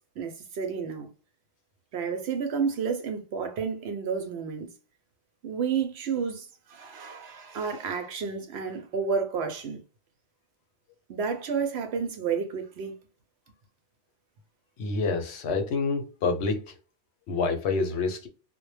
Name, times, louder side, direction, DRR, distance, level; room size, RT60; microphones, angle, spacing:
voice 1, 0.2-1.1 1.9-4.7 5.4-9.8 11.1-12.9, right 6 dB, 65° right, 0.8 m, -31 dB
voice 2, 14.8-16.7 17.3-18.3, left 4 dB, 65° left, 0.8 m, -27 dB
2.2 x 2.1 x 3.1 m
omnidirectional pair, 1.3 m